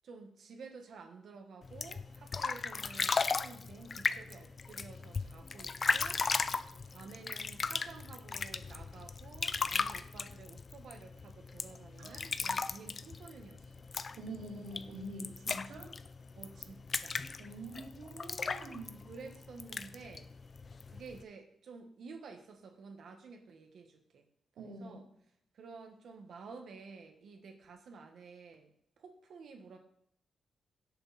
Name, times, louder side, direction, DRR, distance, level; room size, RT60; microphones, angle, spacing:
voice 1, 0.0-6.2 6.8-13.9 16.3-17.2 19.0-20.3 20.9-24.2 24.6-25.0 25.5-29.8, right 4 dB, 55° right, 4 dB, 1.6 m, -51 dB
sound 1, 1.6-21.2, left 4 dB, 30° left, 0.4 m, -37 dB
voice 2, 14.1-15.9 17.4-19.0 24.6-25.0, right 1 dB, 90° right, 0 dB, 3.4 m, -45 dB
17.0 x 6.6 x 4.3 m, 0.73 s
wide cardioid pair, 180°, 0 cm